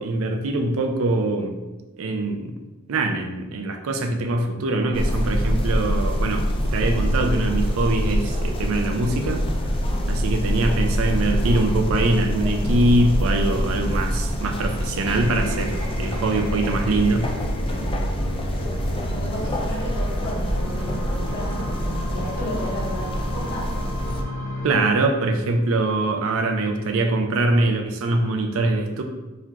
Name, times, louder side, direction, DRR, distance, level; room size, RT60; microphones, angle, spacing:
voice 1, 0.0-1.6 2.0-2.6 2.9-9.4 10.1-17.2 24.6-29.0, right 2 dB, 65° right, 5 dB, 0.4 m, -23 dB
sound 1, 4.9-24.2, equal, 25° left, 0.4 m, -25 dB
voice 2, 9.9-10.2 17.6-18.2 19.1-23.7, equal, 50° left, -5 dB, 1.3 m, -33 dB
sound 2, 15.1-24.7, equal, 75° left, 1.1 m, -34 dB
3.9 x 3.0 x 2.8 m, 1.1 s
head